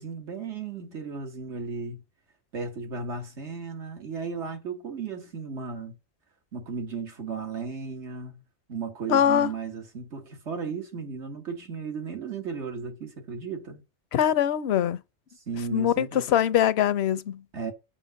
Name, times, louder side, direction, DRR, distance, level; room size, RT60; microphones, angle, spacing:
voice 1, 0.0-2.0 2.5-6.0 6.5-8.4 8.7-13.8 15.5-16.3 17.5-17.7, right 5 dB, 80° right, 1.9 m, -35 dB
voice 2, 9.1-9.5 14.1-15.0 15.7-17.4, left 10 dB, 70° left, 0.9 m, -22 dB
7.4 x 4.8 x 6.4 m
omnidirectional pair, 1.1 m